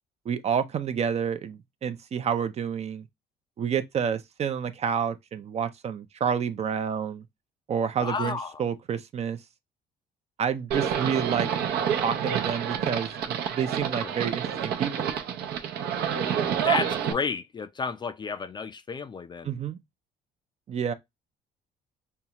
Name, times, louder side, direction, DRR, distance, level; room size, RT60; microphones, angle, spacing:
voice 1, 0.3-3.0 3.6-7.2 7.7-9.4 10.4-11.5 12.0-15.1 19.4-19.8 20.7-20.9, right 7 dB, 40° right, 0.5 m, -29 dB
voice 2, 8.0-8.6 14.0-14.1 16.6-19.5, left 5 dB, 25° left, 0.4 m, -32 dB
Livestock farm animals working animals, 10.7-17.1, right 8 dB, 70° right, 0.7 m, -28 dB
5.4 x 2.4 x 2.9 m
cardioid pair, 110°, 17 cm